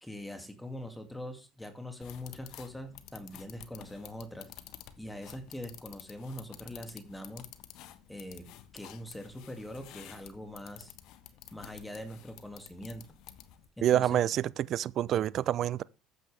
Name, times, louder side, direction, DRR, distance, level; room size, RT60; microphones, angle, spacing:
voice 1, 0.0-4.5 5.0-7.5 8.1-8.5 8.7-10.9 11.5-13.0 13.8-14.3, left 1 dB, 10° left, 2.4 m, -43 dB
sound 1, 2.0-13.7, left 12 dB, 60° left, 1.3 m, -51 dB
voice 2, 13.8-15.8, right 11 dB, 50° right, 0.6 m, -27 dB
13.5 x 9.4 x 3.4 m
hypercardioid pair, 65°, 0 cm